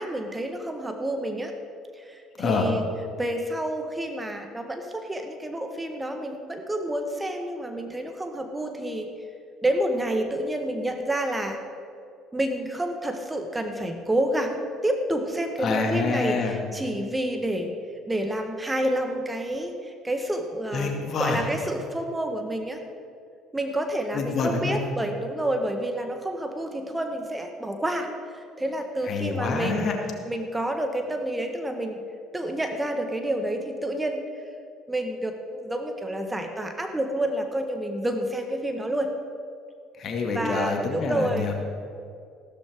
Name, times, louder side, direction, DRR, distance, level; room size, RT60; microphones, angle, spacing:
voice 1, 0.0-1.6 1.9-2.9 3.2-9.1 9.6-11.6 12.3-17.7 18.1-20.9 21.2-22.8 23.5-29.9 30.3-32.0 32.3-34.3 34.9-39.2 40.3-41.5, right 1 dB, 15° right, 5 dB, 1.3 m, -29 dB
voice 2, 15.6-16.6 20.7-21.4 24.1-24.8 29.1-30.0 40.0-41.5, left 4 dB, 45° left, 2 dB, 2.0 m, -26 dB
15.0 x 13.0 x 3.6 m, 2.4 s
hypercardioid pair, 60°, 0 cm